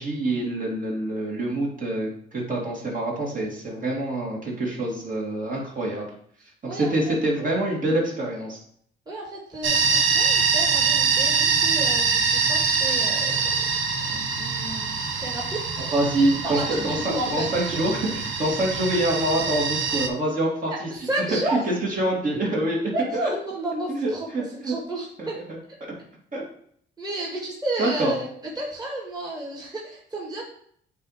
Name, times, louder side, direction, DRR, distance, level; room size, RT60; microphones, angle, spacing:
voice 1, 0.0-6.0 6.6-8.6 15.9-17.0 17.3-20.9 21.5-21.6 21.9-22.9 23.9-24.7 25.2-25.6 26.3-26.4 27.8-28.1, right 1 dB, 40° right, -3 dB, 2.2 m, -26 dB
voice 2, 6.4-7.5 8.1-8.2 9.1-13.4 14.0-16.0 16.4-17.8 20.7-21.7 22.9-25.4 27.0-28.3 28.6-30.4, right 1 dB, 20° right, -3 dB, 1.9 m, -32 dB
sound 1, 9.6-20.1, right 5 dB, 75° right, 0.9 m, -24 dB
8.1 x 2.8 x 4.9 m, 0.64 s
cardioid pair, 90°, 20 cm